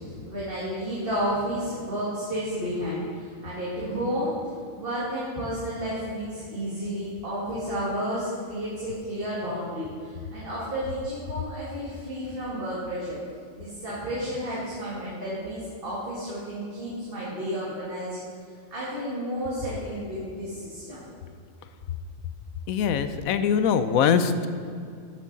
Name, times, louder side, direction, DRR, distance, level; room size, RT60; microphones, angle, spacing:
voice 1, 0.2-4.4 4.7-13.2 13.5-18.2 18.7-21.1, equal, 40° right, -8 dB, 2.2 m, -31 dB
voice 2, 22.7-24.5, left 7 dB, 90° left, 11 dB, 1.0 m, -22 dB
14.5 x 6.6 x 4.0 m, 2.3 s
omnidirectional pair, 1.4 m